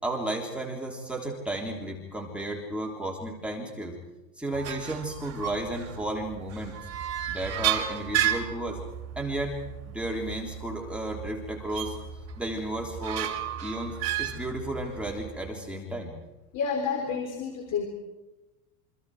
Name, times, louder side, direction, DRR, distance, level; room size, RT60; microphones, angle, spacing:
voice 1, 0.0-4.0 4.4-6.7 7.3-8.8 9.1-9.6 9.8-12.0 12.4-13.3 13.6-16.1, right 1 dB, ahead, -1 dB, 3.4 m, -33 dB
sound 1, 4.5-15.5, right 10 dB, 30° right, 2.9 m, -34 dB
voice 2, 16.5-17.9, left 6 dB, 40° left, 3 dB, 4.0 m, -30 dB
28.0 x 25.5 x 4.9 m, 1.0 s
supercardioid pair, 130°, 46 cm